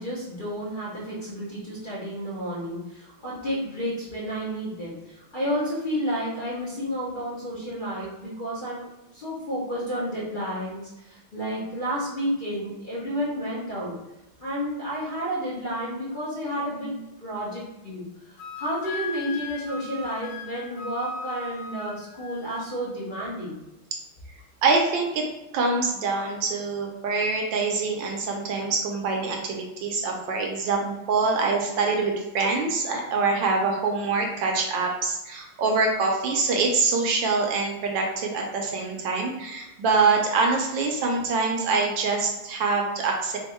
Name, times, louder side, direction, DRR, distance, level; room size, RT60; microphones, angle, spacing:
voice 1, 0.0-8.9 9.1-14.0 14.4-23.6, equal, 50° left, -7 dB, 0.6 m, -31 dB
Wind instrument woodwind instrument, 18.4-22.7, left 4 dB, 80° left, 1.3 m, -37 dB
voice 2, 24.6-25.3 25.5-43.4, right 4 dB, 70° right, 1 dB, 1.2 m, -25 dB
3.5 x 2.5 x 4.2 m, 0.97 s
omnidirectional pair, 2.3 m